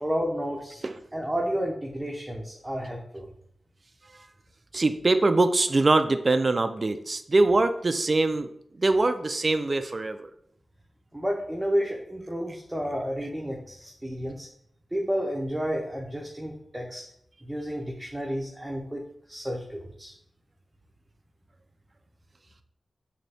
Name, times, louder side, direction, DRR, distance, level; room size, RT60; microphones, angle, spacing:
voice 1, 0.0-0.8 1.1-3.3 11.1-14.5 14.9-17.0 17.4-19.0 19.3-20.1, equal, 10° right, -2 dB, 0.6 m, -31 dB
voice 2, 4.7-8.5 8.8-10.3, right 2 dB, 45° right, 10 dB, 0.3 m, -23 dB
3.9 x 2.7 x 3.4 m, 0.71 s
cardioid pair, 55°, 0 cm